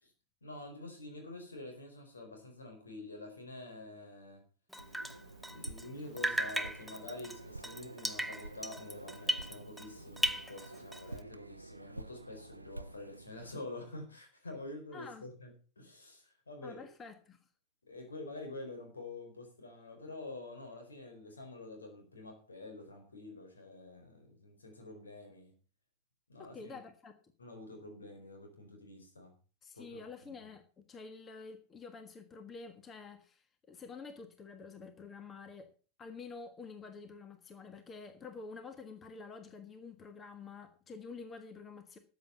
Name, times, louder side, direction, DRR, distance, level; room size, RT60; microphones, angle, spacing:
voice 1, 0.4-4.4 5.5-16.9 17.8-25.5 26.3-26.8 27.4-29.3 29.7-30.3, left 2 dB, 75° left, 4.5 m, -47 dB
Drip, 4.7-5.9 6.2-9.9 10.2-11.2, right 1 dB, ahead, 0.9 m, -37 dB
sound 1, 4.8-13.5, right 2 dB, 85° right, 0.6 m, -49 dB
voice 2, 14.9-15.2 16.6-17.4 26.4-27.1 29.6-35.7 36.0-42.0, left 4 dB, 20° left, 1.4 m, -49 dB
13.5 x 8.1 x 5.7 m
figure-of-eight pair, 90°, 0 cm